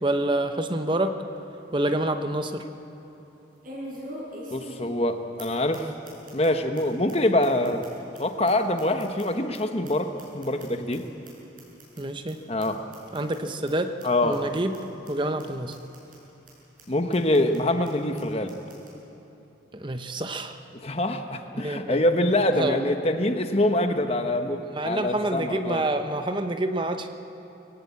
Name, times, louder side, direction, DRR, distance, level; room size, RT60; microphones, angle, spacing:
voice 1, 0.0-1.2 1.7-2.6 12.0-12.4 13.1-13.9 14.2-14.8 15.1-15.7 19.7-20.6 21.5-22.0 22.5-22.8 24.7-27.1, right 1 dB, 25° right, 7 dB, 0.8 m, -27 dB
sound 1, 1.3-1.4 1.8-1.9 3.6-5.1 5.4-5.5 5.7-5.8 6.0-6.5 6.7-6.8 7.1-7.2 7.4-9.6 9.8-11.0 11.2-11.3 11.6-12.0 12.3-12.4 12.6-12.7 12.9-13.4 13.7-13.8 14.0-14.1 14.3-14.8 15.0-15.1 15.4-15.5 15.7-16.2 16.5-16.6 16.8-16.9 17.1-17.6 17.8-17.9 18.2-18.3 18.5-18.9, equal, 45° right, 6.8 m, -42 dB
voice 2, 4.5-5.9 6.3-7.9 8.2-11.0 12.5-12.8 14.0-14.5 16.9-18.6 20.8-25.8, left 1 dB, 30° left, 6 dB, 1.1 m, -25 dB
22.5 x 17.5 x 8.3 m, 2.9 s
head